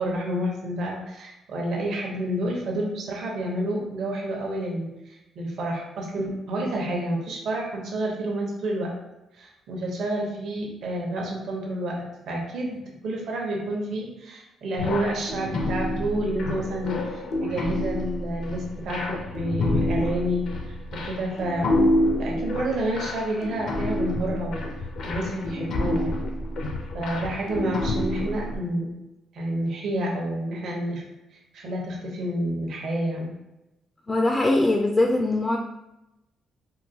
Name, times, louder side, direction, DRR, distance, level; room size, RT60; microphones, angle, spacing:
voice 1, 0.0-4.9 5.4-8.9 9.4-12.0 12.3-21.8 22.2-24.6 25.0-26.1 26.9-28.9 29.3-31.0 31.5-33.3, right 1 dB, 70° right, -1 dB, 0.8 m, -29 dB
sound 1, 14.8-28.6, left 1 dB, 70° left, 0.5 m, -28 dB
voice 2, 34.1-35.6, left 2 dB, 20° left, 1 dB, 0.3 m, -21 dB
3.8 x 2.2 x 2.7 m, 0.93 s
cardioid pair, 90°, 0 cm